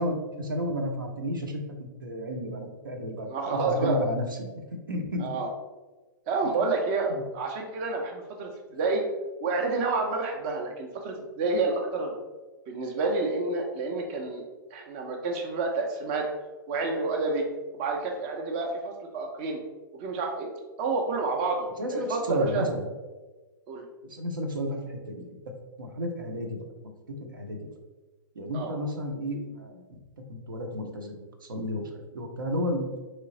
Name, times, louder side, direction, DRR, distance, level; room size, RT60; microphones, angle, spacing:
voice 1, 0.0-5.3 21.8-22.9 24.1-25.3 25.8-26.6 27.1-27.6 28.4-29.8 30.3-31.1 31.4-32.9, equal, 70° right, 3 dB, 0.8 m, -32 dB
voice 2, 3.3-4.0 5.2-5.5 6.3-9.0 9.4-12.2 12.7-14.4 14.7-16.3 16.7-17.4 17.7-19.6 19.9-20.5 20.8-22.6 23.7-23.8 28.5-28.7, right 3 dB, 35° right, 2 dB, 0.6 m, -29 dB
3.8 x 3.2 x 3.8 m, 1.2 s
figure-of-eight pair, 110°, 11 cm